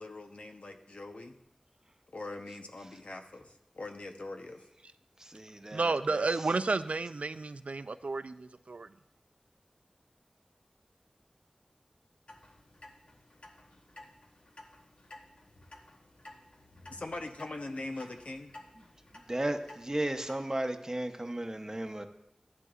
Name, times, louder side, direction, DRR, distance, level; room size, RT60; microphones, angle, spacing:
voice 1, 0.0-1.4 2.1-4.7 16.9-18.5, left 2 dB, 80° left, 5 dB, 0.9 m, -42 dB
voice 2, 5.2-6.2 19.3-22.1, right 1 dB, 25° right, 7 dB, 0.8 m, -35 dB
voice 3, 5.7-8.9, right 3 dB, 85° right, 12 dB, 0.4 m, -32 dB
Clock, 12.3-20.4, left 1 dB, 60° left, 1.2 m, -54 dB
13.5 x 11.0 x 2.5 m, 0.84 s
wide cardioid pair, 55°, 2 cm